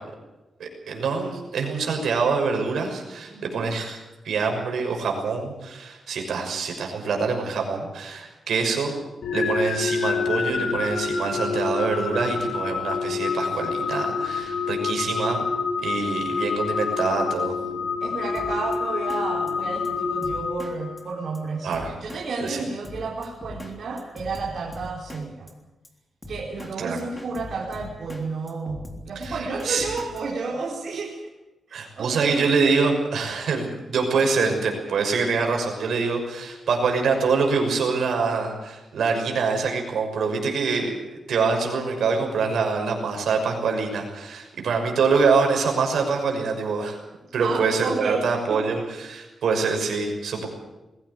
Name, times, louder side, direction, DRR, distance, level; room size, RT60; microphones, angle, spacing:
voice 1, 0.6-4.0 4.2-8.9 9.3-15.4 15.8-17.5 21.6-21.9 22.4-22.6 26.8-27.0 29.2-29.4 29.6-29.8 31.7-47.0 47.3-50.5, right 4 dB, 75° right, 3 dB, 6.2 m, -25 dB
voice 2, 3.3-3.6 14.6-15.2 18.0-21.7 22.0-25.5 26.3-31.2 31.7-32.5 47.4-48.2 48.5-49.2, right 4 dB, 55° right, -3 dB, 4.1 m, -32 dB
sound 1, 9.2-21.2, left 5 dB, 80° left, 2.8 m, -27 dB
Drum kit, 18.3-18.8 19.1-19.2 19.5-19.6 19.8-19.9 20.2-20.7 21.0-21.1 21.3-21.4 21.7-22.2 22.5-22.6 22.8-23.7 24.0-25.2 25.5-25.6 25.8-25.9 26.2-26.7 27.0-28.2 28.5-30.2, left 1 dB, 15° left, 3.5 m, -40 dB
21.5 x 16.5 x 8.4 m, 1.0 s
wide cardioid pair, 125°, 0 cm